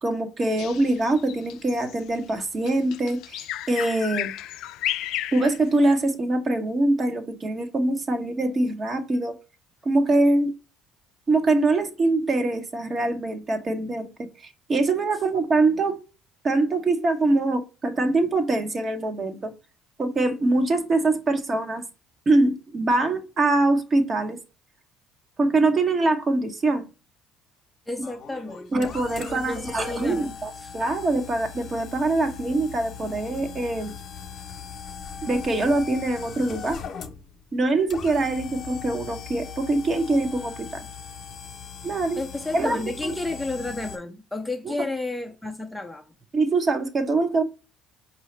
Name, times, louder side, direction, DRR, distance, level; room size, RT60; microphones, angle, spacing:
voice 1, 0.0-4.3 5.3-9.3 9.8-10.5 11.3-14.3 14.7-16.0 16.4-19.5 20.0-21.8 22.3-24.4 25.4-26.8 28.7-33.9 35.2-36.8 37.5-40.9 41.8-42.2 42.5-43.2 44.7-44.8 46.3-47.4, right 2 dB, 35° right, 1.0 m, -23 dB
Bird vocalization bird call bird song, 0.6-6.1, left 13 dB, 70° left, 0.3 m, -33 dB
voice 2, 27.9-28.9 29.3-30.7 41.9-46.1, left 2 dB, 5° left, 0.7 m, -32 dB
sound 1, 28.0-44.0, left 7 dB, 50° left, 0.9 m, -39 dB
4.7 x 2.7 x 3.2 m
supercardioid pair, 80°, 0 cm